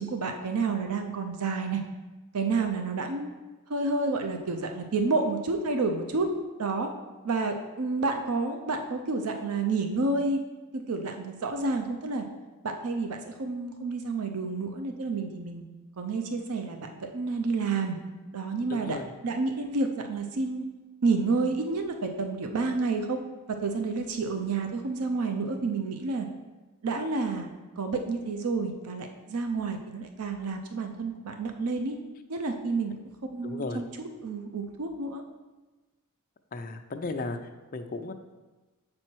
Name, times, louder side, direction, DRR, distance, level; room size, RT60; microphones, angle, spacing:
voice 1, 0.0-1.8 2.3-3.3 3.7-6.3 6.6-6.9 7.2-10.4 10.9-12.2 12.6-15.6 16.0-18.0 18.3-19.0 19.2-20.6 21.0-23.2 23.6-26.3 26.8-27.5 27.8-31.9 32.3-32.9 33.3-33.9 34.2-35.2, right 3 dB, 85° right, 5 dB, 0.6 m, -29 dB
voice 2, 18.7-19.1 33.4-33.8 36.5-38.1, left 3 dB, 40° left, 7 dB, 0.5 m, -35 dB
7.4 x 4.4 x 4.5 m, 1.2 s
head